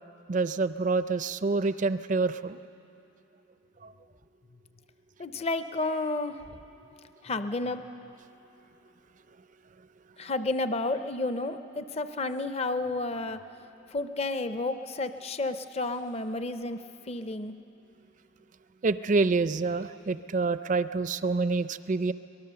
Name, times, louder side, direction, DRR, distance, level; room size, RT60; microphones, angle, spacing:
voice 1, 0.3-2.6 3.8-3.9 18.8-22.1, right 3 dB, 35° right, 13 dB, 0.4 m, -27 dB
voice 2, 5.2-6.4 7.2-7.8 10.2-13.4 13.9-16.8 17.1-17.5, left 2 dB, 30° left, 10 dB, 0.5 m, -31 dB
24.0 x 19.5 x 6.8 m, 2.9 s
head